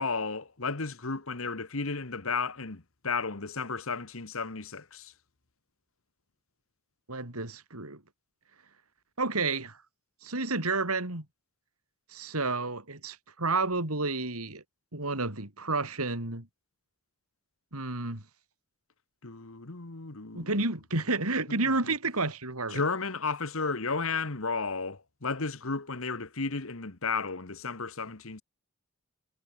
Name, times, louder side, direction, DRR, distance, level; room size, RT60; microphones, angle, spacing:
voice 1, 0.0-5.1 19.2-20.5 21.5-21.7 22.7-28.4, left 4 dB, 70° left, 1.6 m, -33 dB
voice 2, 7.1-8.0 9.2-9.8 10.2-11.2 12.1-14.6 14.9-16.5 17.7-18.2 20.3-22.8, right 3 dB, 85° right, 4.8 m, -30 dB
head